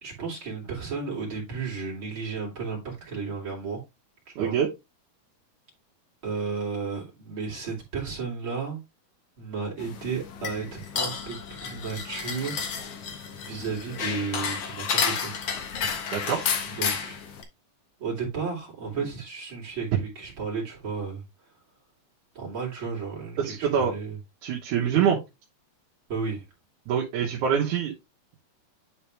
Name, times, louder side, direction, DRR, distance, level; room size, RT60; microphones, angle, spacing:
voice 1, 0.0-3.8 4.3-4.6 6.2-8.8 9.4-12.7 13.4-15.6 16.7-17.2 18.0-21.2 22.3-24.2 24.8-25.1 26.1-26.4, right 5 dB, 35° right, 3.0 m, -33 dB
voice 2, 4.4-4.7 16.1-16.5 23.4-23.9 24.4-25.2 26.9-27.9, right 8 dB, 65° right, 2.3 m, -25 dB
sound 1, 9.8-17.4, left 6 dB, 65° left, 1.5 m, -31 dB
10.0 x 3.9 x 3.4 m
omnidirectional pair, 4.5 m